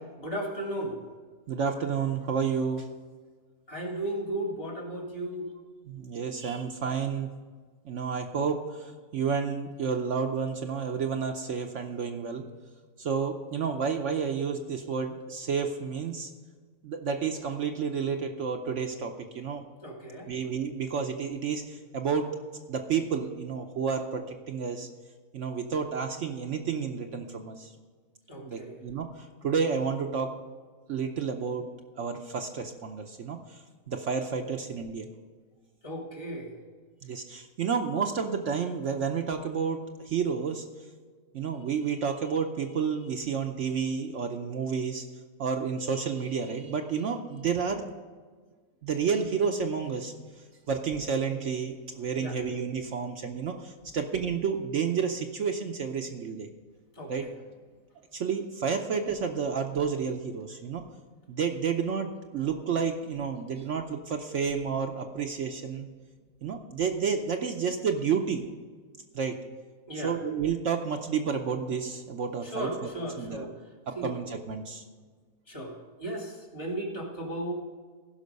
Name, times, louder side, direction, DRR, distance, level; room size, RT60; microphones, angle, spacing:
voice 1, 0.2-1.0 3.7-5.5 19.8-20.3 28.3-28.8 35.8-36.6 52.2-52.4 57.0-57.3 69.9-70.2 72.4-73.5 73.9-74.1 75.5-77.5, right 1 dB, 50° left, 1 dB, 2.2 m, -35 dB
voice 2, 1.5-2.9 5.9-7.3 7.8-12.4 13.0-16.3 16.8-19.6 20.3-22.4 22.7-24.9 25.3-27.7 28.3-30.3 30.9-31.7 32.0-35.1 37.0-40.7 41.3-45.0 45.4-47.9 48.8-50.1 50.7-56.5 57.1-57.2 58.1-60.8 61.3-65.9 66.4-68.5 69.1-69.4 70.0-72.9 73.2-73.5 73.9-74.8, right 6 dB, 60° right, 4 dB, 0.9 m, -30 dB
15.5 x 5.8 x 5.2 m, 1.5 s
omnidirectional pair, 1.6 m